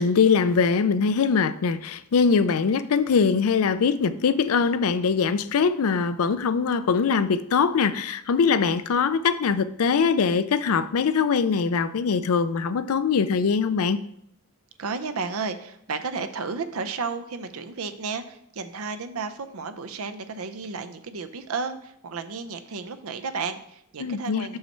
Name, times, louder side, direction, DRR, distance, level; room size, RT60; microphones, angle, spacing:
voice 1, 0.0-14.0 24.0-24.6, left 5 dB, 85° left, 0.4 m, -22 dB
voice 2, 14.8-24.6, right 4 dB, 85° right, 0.6 m, -33 dB
6.5 x 5.6 x 4.4 m
head